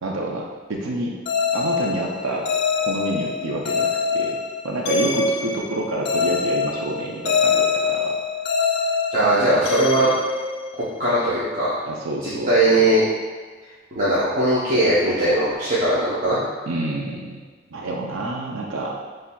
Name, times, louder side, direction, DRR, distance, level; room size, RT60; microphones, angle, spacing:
voice 1, 0.0-1.2 1.5-2.5 2.8-4.4 4.6-8.1 9.2-10.2 11.9-12.9 16.7-17.4 17.7-19.0, right 2 dB, 80° right, -1 dB, 0.5 m, -28 dB
sound 1, 1.3-11.1, left 5 dB, 60° left, 0.4 m, -24 dB
voice 2, 9.1-10.1 11.0-11.7 12.5-13.0 13.9-16.5, right 1 dB, 45° right, -10 dB, 0.8 m, -19 dB
5.8 x 3.2 x 2.2 m, 1.4 s
head